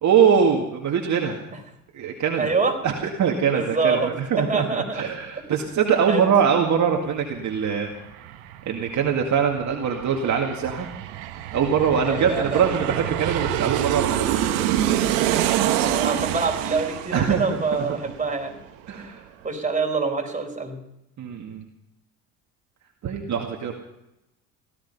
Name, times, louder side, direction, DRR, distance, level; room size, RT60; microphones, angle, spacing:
voice 1, 0.0-1.4 1.9-2.5 2.8-7.9 8.7-10.9 11.5-14.5 17.1-17.8 18.9-19.2 21.2-21.6 23.0-23.7, right 7 dB, 45° right, 1 dB, 2.1 m, -23 dB
voice 2, 2.4-2.8 3.5-4.1 4.4-5.0 6.1-6.3 12.1-12.8 15.8-18.6 18.9-19.1 19.4-20.8, right 4 dB, 20° right, 4 dB, 4.3 m, -26 dB
Aircraft, 7.0-7.1 7.3-18.6 18.9-19.0, right 11 dB, 70° right, 1.4 m, -27 dB
17.5 x 13.5 x 5.6 m, 0.87 s
hypercardioid pair, 70°, 41 cm